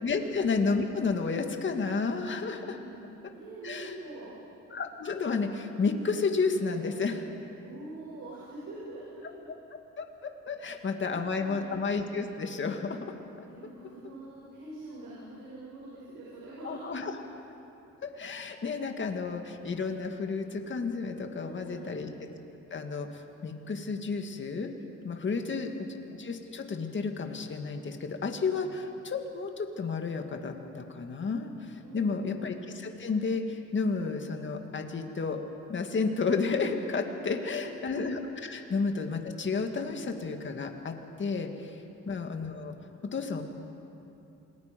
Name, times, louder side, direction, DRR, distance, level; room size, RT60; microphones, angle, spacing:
voice 1, 0.0-2.8 3.6-3.9 4.7-7.3 10.0-13.1 16.6-17.2 18.2-22.1 22.7-24.7 25.0-35.4 35.7-41.8 42.1-42.8 43.1-43.4, left 4 dB, 40° left, 4 dB, 2.0 m, -31 dB
voice 2, 2.7-4.3 7.6-9.5 10.6-10.8 11.0-11.7 13.5-16.9 21.4-22.0 31.8-32.5 37.3-37.9, right 2 dB, 75° right, -6 dB, 6.2 m, -45 dB
27.5 x 20.0 x 5.3 m, 2.9 s
cardioid pair, 90°, 30 cm